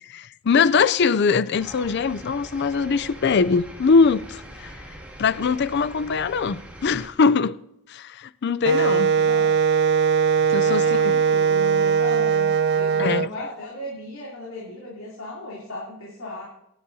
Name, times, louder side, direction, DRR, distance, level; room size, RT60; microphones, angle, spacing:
voice 1, 0.1-4.7 5.2-7.6 7.9-9.1 10.5-11.1 13.0-13.3, left 5 dB, 55° left, 0.4 m, -22 dB
sound 1, 1.5-7.1, right 1 dB, 10° right, 2.3 m, -42 dB
Wind instrument woodwind instrument, 8.6-13.3, right 6 dB, 50° right, 0.4 m, -20 dB
voice 2, 9.1-9.5 10.6-16.4, left 1 dB, 75° left, 3.2 m, -36 dB
24.5 x 10.5 x 2.8 m
head